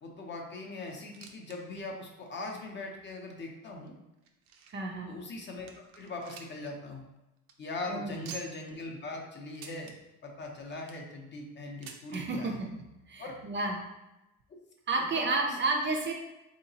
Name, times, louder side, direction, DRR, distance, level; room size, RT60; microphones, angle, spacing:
voice 1, 0.0-3.9 5.1-7.1 7.6-9.9 10.2-12.6 13.2-13.3 14.5-14.6 15.1-15.2, left 2 dB, 35° left, 1 dB, 0.5 m, -40 dB
sound 1, 1.1-1.6 1.9-2.0 2.6-2.7 3.5-4.9 5.3-5.4 5.7-6.7 7.0-7.1 7.4-7.5 8.2-8.7 9.5-10.0 10.6-11.1 11.8-12.2 13.2-13.3 13.5-13.6 14.4-14.5, right 6 dB, 80° right, 0.6 m, -48 dB
voice 2, 4.7-5.1 7.9-8.3 12.1-12.7 13.1-13.8 14.9-16.1, right 3 dB, 35° right, 1 dB, 0.4 m, -31 dB
3.8 x 2.8 x 2.7 m, 0.97 s
cardioid pair, 135°, 34 cm